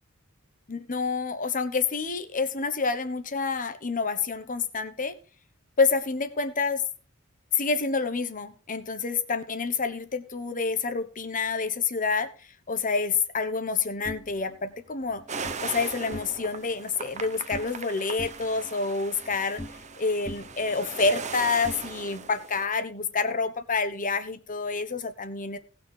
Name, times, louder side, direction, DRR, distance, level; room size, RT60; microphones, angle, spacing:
voice 1, 0.7-5.1 5.8-6.8 7.5-12.3 12.7-15.2 15.6-19.6 20.0-25.6, left 4 dB, 40° left, 10 dB, 1.3 m, -28 dB
sound 1, 14.0-15.7 16.0-16.7 16.9-17.9 18.2-20.0 20.3-22.4, left 1 dB, 15° left, 0.6 m, -43 dB
sound 2, 15.3-22.7, right 5 dB, 35° right, 0.9 m, -39 dB
18.0 x 6.4 x 4.6 m, 0.37 s
head